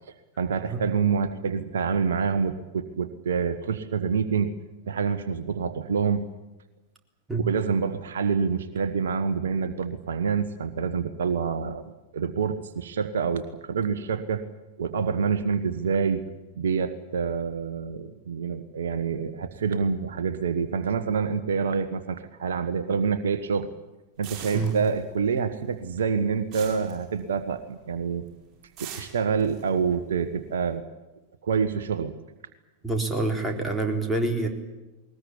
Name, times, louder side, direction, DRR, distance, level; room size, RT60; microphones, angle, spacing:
voice 1, 0.4-4.5 4.9-6.3 7.4-11.8 12.1-14.4 14.8-16.3 16.5-23.7 24.2-28.2 28.8-30.8 31.4-32.1, right 6 dB, 65° right, 11 dB, 1.3 m, -27 dB
sound 1, 24.2-25.4 25.6-27.7 28.0-28.3 28.8-30.7, right 8 dB, 30° right, 7.0 m, -43 dB
voice 2, 32.8-34.5, right 2 dB, 5° right, 1 dB, 4.0 m, -26 dB
20.5 x 20.0 x 9.9 m, 1.1 s
figure-of-eight pair, 90°, 0 cm